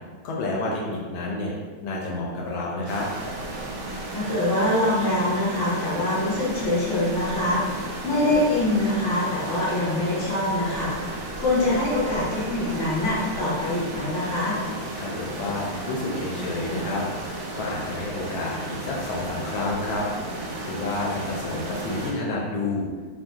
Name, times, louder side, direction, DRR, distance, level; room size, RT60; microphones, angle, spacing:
voice 1, 0.2-1.5 1.8-3.1 15.0-20.1 20.6-22.9, left 2 dB, 80° left, -3 dB, 1.3 m, -29 dB
sound 1, 2.9-22.1, right 2 dB, 80° right, 1.4 m, -34 dB
voice 2, 4.1-7.6 8.0-10.9 11.4-14.6, left 1 dB, 45° left, -8 dB, 0.8 m, -24 dB
3.3 x 2.6 x 2.3 m, 1.5 s
omnidirectional pair, 2.2 m